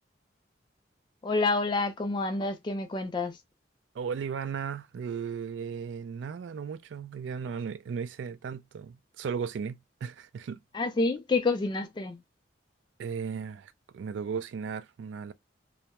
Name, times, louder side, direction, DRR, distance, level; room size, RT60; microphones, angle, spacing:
voice 1, 1.2-3.4 10.7-12.2, left 3 dB, 25° left, 0.3 m, -28 dB
voice 2, 3.9-10.6 13.0-15.3, right 6 dB, 85° right, 0.3 m, -36 dB
2.3 x 2.0 x 2.8 m
head